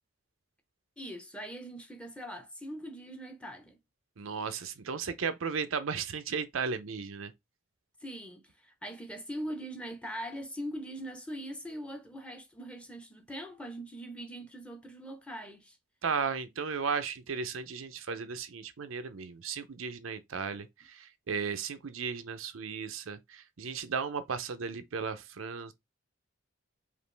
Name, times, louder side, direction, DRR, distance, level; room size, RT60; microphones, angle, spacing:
voice 1, 1.0-3.8 8.0-15.8, equal, 5° left, 0.7 m, -41 dB
voice 2, 4.2-7.3 16.0-25.7, right 5 dB, 90° right, 0.6 m, -35 dB
5.1 x 2.5 x 3.2 m
head